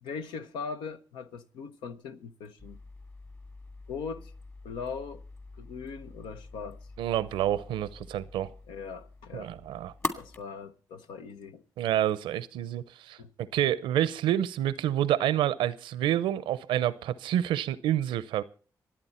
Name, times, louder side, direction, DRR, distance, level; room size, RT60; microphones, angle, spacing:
voice 1, 0.0-2.8 3.9-4.3 4.6-5.2 5.6-6.8 8.7-9.5 10.2-11.6 13.2-13.3, left 5 dB, 90° left, 0.8 m, -40 dB
sound 1, 2.6-10.4, left 2 dB, 35° left, 2.5 m, -43 dB
voice 2, 7.0-8.5 9.3-9.9 11.8-13.2 13.5-18.4, right 11 dB, 90° right, 0.6 m, -28 dB
26.0 x 8.8 x 4.3 m
supercardioid pair, 50°, 8 cm